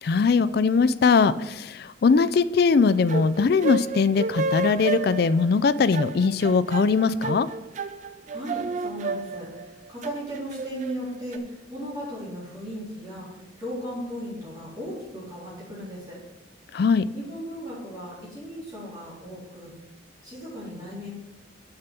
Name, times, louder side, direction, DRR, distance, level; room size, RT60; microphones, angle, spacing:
voice 1, 0.0-7.5 16.7-17.1, left 5 dB, 50° left, 14 dB, 0.3 m, -21 dB
sound 1, 2.9-11.4, right 3 dB, 40° right, 0.3 m, -31 dB
voice 2, 8.3-16.2 17.1-19.7 20.2-21.1, equal, 20° right, -8 dB, 3.6 m, -36 dB
6.8 x 6.7 x 5.9 m, 1.0 s
head